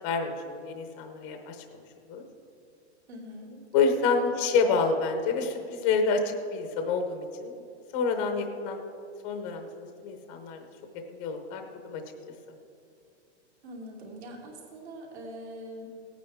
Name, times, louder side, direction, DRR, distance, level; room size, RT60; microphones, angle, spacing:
voice 1, 0.0-1.6 2.1-2.2 3.7-7.7 7.9-8.8 9.2-10.6 11.1-12.0, left 4 dB, 15° left, 5 dB, 0.6 m, -28 dB
voice 2, 3.1-3.5 4.2-4.4 13.6-15.9, equal, 65° right, -2 dB, 3.1 m, -43 dB
17.5 x 9.1 x 3.5 m, 2.4 s
hypercardioid pair, 170°, 35 cm